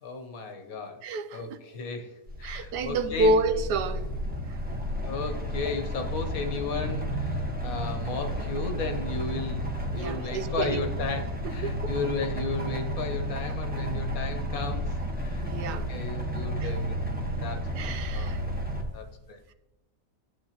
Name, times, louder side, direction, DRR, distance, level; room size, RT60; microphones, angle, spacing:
voice 1, 0.0-1.0 1.3-2.1 2.4-3.3 5.0-9.6 9.9-14.9 15.2-18.3 18.9-19.4, left 4 dB, 60° left, 1.3 m, -35 dB
voice 2, 1.0-1.4 2.4-4.1 9.3-9.4 9.9-10.8 11.4-11.9 15.4-15.9 16.6-16.7 17.8-18.4, right 2 dB, 80° right, 1.2 m, -29 dB
sound 1, 2.3-18.8, equal, 5° right, 0.9 m, -32 dB
12.0 x 7.9 x 2.9 m
omnidirectional pair, 1.8 m